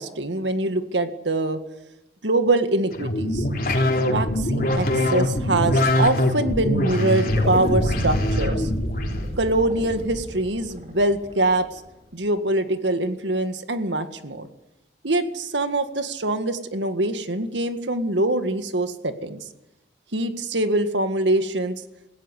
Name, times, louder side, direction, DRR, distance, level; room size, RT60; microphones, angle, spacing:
voice 1, 0.0-1.6 2.2-3.5 4.1-8.7 9.4-11.8 12.1-14.5 15.0-19.4 20.1-21.7, right 2 dB, 85° right, 8 dB, 1.9 m, -24 dB
sound 1, 2.9-9.3, left 1 dB, 50° left, 3.5 m, -23 dB
sound 2, 7.3-11.9, equal, 35° right, 4.7 m, -30 dB
20.0 x 16.5 x 8.3 m, 0.92 s
head